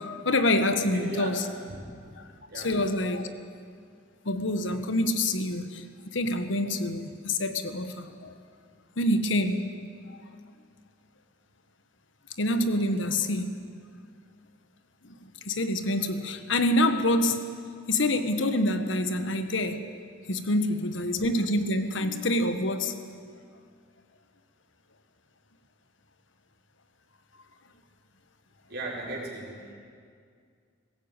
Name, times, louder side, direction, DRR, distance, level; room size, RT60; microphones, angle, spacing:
voice 1, 0.0-1.4 2.5-3.2 4.2-5.8 6.1-8.3 9.0-9.6 12.4-13.5 15.0-17.5 17.9-19.9 20.3-22.9, left 1 dB, 70° left, 9 dB, 1.4 m, -26 dB
voice 2, 0.7-1.3 1.7-1.9 2.3-2.8 28.7-29.7, right 2 dB, 60° right, -3 dB, 4.9 m, -37 dB
20.5 x 17.0 x 9.1 m, 2.2 s
head